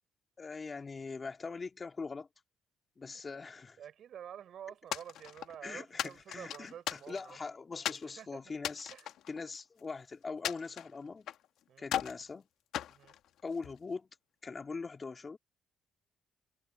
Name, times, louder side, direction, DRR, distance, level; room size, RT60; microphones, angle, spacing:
voice 1, 0.4-2.3 3.0-3.8 5.6-8.9 9.3-11.3 11.8-12.5 13.4-14.1 14.4-15.4, left 4 dB, 35° left, 2.0 m, -42 dB
voice 2, 3.8-7.4 8.1-8.5 8.9-9.1 11.7-11.9 12.9-13.1, right 9 dB, 65° right, 5.8 m, -49 dB
sound 1, 4.9-5.6 6.0-7.4 7.8-8.1 8.6-9.9 10.4-11.5 11.8-12.2 12.7-13.8, left 11 dB, 80° left, 1.4 m, -38 dB
cardioid pair, 90°, 0 cm